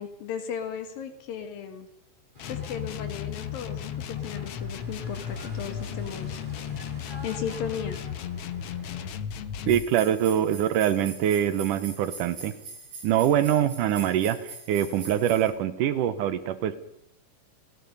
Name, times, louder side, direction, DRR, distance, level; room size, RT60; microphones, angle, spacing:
voice 1, 0.0-1.9 2.5-6.6 7.2-8.0, left 7 dB, 85° left, 7 dB, 3.7 m, -36 dB
sound 1, 2.3-9.1, right 1 dB, 15° right, 3.8 m, -48 dB
sound 2, 2.4-9.9, left 9 dB, 70° left, 1.4 m, -35 dB
sound 3, 9.7-15.5, right 4 dB, 55° right, 7.5 m, -43 dB
voice 2, 9.7-12.6 13.0-16.8, right 10 dB, 75° right, 13 dB, 2.4 m, -24 dB
29.0 x 18.0 x 5.5 m, 0.79 s
omnidirectional pair, 3.9 m